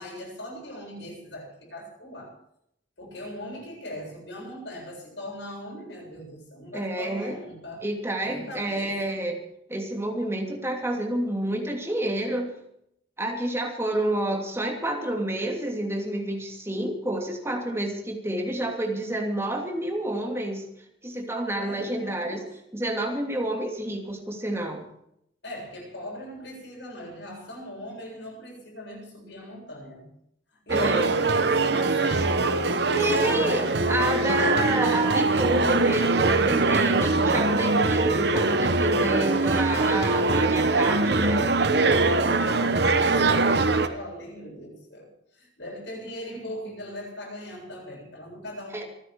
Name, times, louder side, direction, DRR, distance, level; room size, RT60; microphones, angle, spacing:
voice 1, 0.0-2.3 3.0-7.9 8.2-9.2 21.5-22.5 25.4-30.1 30.7-32.8 33.2-33.7 41.7-48.9, left 1 dB, 75° left, -1 dB, 7.8 m, -39 dB
voice 2, 6.7-7.4 7.8-9.4 9.7-12.5 13.2-20.6 21.0-22.4 22.7-24.8 30.7-31.1 33.0-41.5 48.7-48.8, right 1 dB, 15° right, 1 dB, 2.9 m, -29 dB
sound 1, 30.7-43.9, right 3 dB, 60° right, 1.1 m, -22 dB
27.0 x 10.0 x 4.8 m, 0.75 s
head